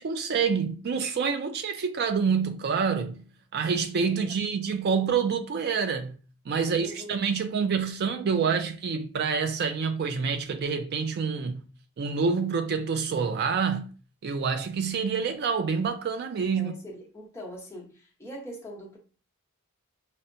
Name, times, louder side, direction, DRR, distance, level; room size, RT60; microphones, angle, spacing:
voice 1, 0.0-3.2 3.5-6.2 6.5-11.6 12.0-13.9 14.2-16.7, right 5 dB, 50° right, 0.3 m, -27 dB
voice 2, 6.5-7.1 16.5-19.0, equal, 15° left, 0.9 m, -43 dB
5.4 x 2.1 x 2.6 m
head